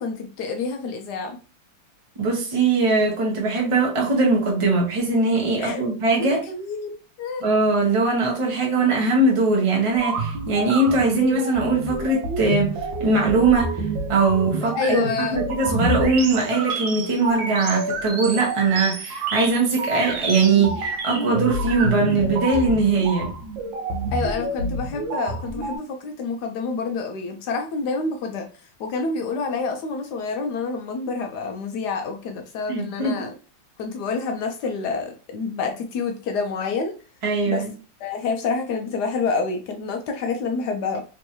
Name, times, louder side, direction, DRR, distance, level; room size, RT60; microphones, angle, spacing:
voice 1, 0.0-1.4 5.6-5.8 6.2-7.5 14.6-15.4 24.1-28.4 28.8-33.3 33.8-36.9 37.5-37.6 38.0-41.0, left 4 dB, 70° left, 5 dB, 1.0 m, -28 dB
voice 2, 2.2-6.4 7.4-12.7 13.0-13.8 14.1-23.3 32.7-33.1 37.2-37.7, right 3 dB, 25° right, -1 dB, 0.7 m, -21 dB
sound 1, 9.9-25.8, right 2 dB, 80° right, 1.4 m, -28 dB
3.5 x 3.0 x 3.0 m, 0.36 s
omnidirectional pair, 2.1 m